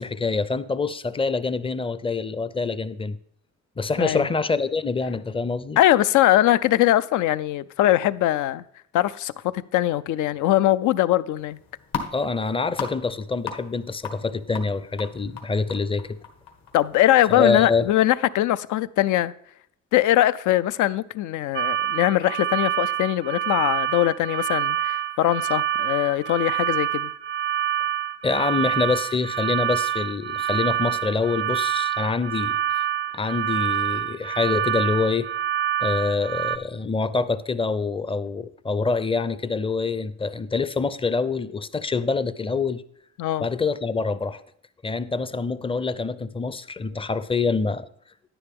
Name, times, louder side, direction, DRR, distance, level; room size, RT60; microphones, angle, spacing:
voice 1, 0.0-3.2 3.8-5.8 12.1-16.2 17.3-17.9 28.2-32.6 33.1-35.3 35.8-42.8 43.4-44.4 44.8-47.9, left 4 dB, 20° left, 0.5 m, -25 dB
voice 2, 5.8-8.6 8.9-11.6 16.7-19.3 19.9-27.1 43.2-43.5, left 14 dB, 75° left, 0.5 m, -21 dB
sound 1, 11.3-18.1, left 6 dB, 60° left, 1.6 m, -38 dB
sound 2, 21.5-36.6, right 11 dB, 40° right, 0.4 m, -26 dB
10.0 x 9.9 x 3.5 m
cardioid pair, 90°, 30 cm